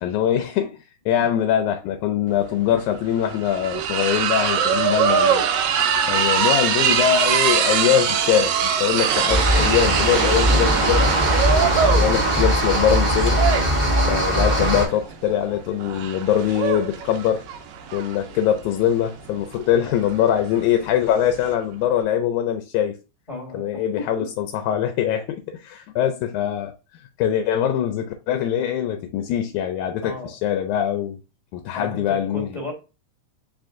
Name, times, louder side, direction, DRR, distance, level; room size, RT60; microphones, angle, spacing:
voice 1, 0.0-0.8 1.1-5.5 6.1-11.2 11.8-13.5 14.1-17.4 17.9-23.0 23.5-31.2 31.5-32.5, left 10 dB, 85° left, 2.0 m, -23 dB
sound 1, 2.3-2.4 2.7-21.5, right 7 dB, 85° right, 2.0 m, -23 dB
sound 2, 9.3-14.9, equal, 60° right, 0.4 m, -20 dB
voice 2, 23.3-24.3 30.0-30.3 31.7-32.7, left 2 dB, 40° left, 0.5 m, -34 dB
4.8 x 2.5 x 3.6 m
omnidirectional pair, 3.4 m